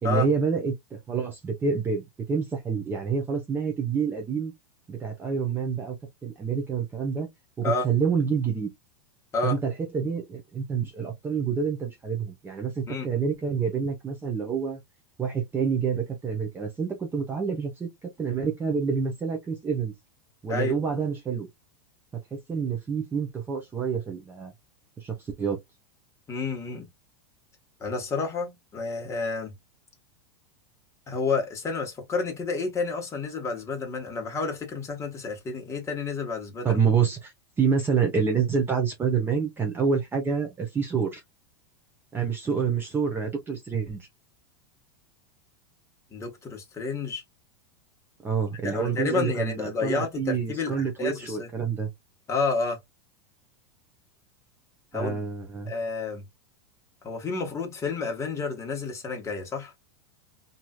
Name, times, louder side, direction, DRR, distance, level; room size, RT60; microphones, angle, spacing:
voice 1, 0.0-4.5 4.9-6.0 6.2-7.3 7.6-8.7 9.4-14.8 15.2-19.9 20.4-21.5 22.3-24.5 25.0-25.6 36.6-41.2 42.1-44.1 48.2-51.9 54.9-55.7, right 6 dB, 15° right, 0.8 m, -27 dB
voice 2, 26.3-26.9 27.8-29.5 31.1-36.8 46.1-47.2 48.6-51.5 52.3-52.8 54.9-55.2 55.7-56.2 57.0-59.7, left 4 dB, 20° left, 1.3 m, -30 dB
3.1 x 2.7 x 2.3 m
supercardioid pair, 135°, 14 cm